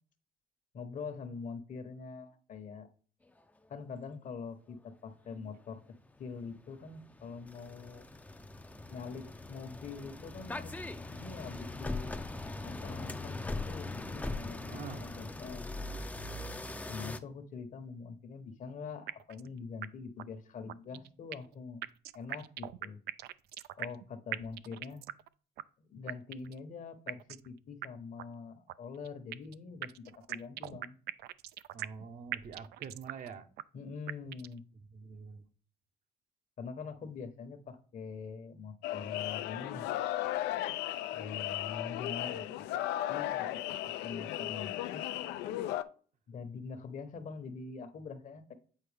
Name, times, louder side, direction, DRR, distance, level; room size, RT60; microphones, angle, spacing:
voice 1, 0.7-2.9 3.7-5.8 6.2-8.1 8.9-10.7 11.1-12.2 12.6-15.6 16.9-21.8 22.1-23.0 23.8-25.0 25.9-29.9 30.2-31.0 33.7-34.6 36.6-39.9 41.1-45.0 46.3-48.5, left 5 dB, 50° left, 9 dB, 1.0 m, -44 dB
sound 1, 5.5-5.7 6.3-17.2, left 2 dB, 10° left, 0.5 m, -41 dB
voice 2, 14.7-15.0 31.7-33.5 34.2-34.3 34.7-35.5, right 6 dB, 50° right, 8 dB, 0.8 m, -46 dB
sound 2, 19.1-19.5 19.8-19.9 20.2-20.3 20.7-21.5 21.8-24.0 24.3-25.3 25.6-25.7 26.1-26.6 27.1-27.5 27.8-27.9 28.2-28.3 28.7-29.5 29.8-32.0 32.3-33.3 33.6-33.7 34.1-34.6, right 14 dB, 70° right, 0.4 m, -41 dB
sound 3, 38.8-45.8, left 13 dB, 85° left, 0.5 m, -35 dB
8.3 x 4.4 x 3.4 m, 0.42 s
cardioid pair, 110°, 17 cm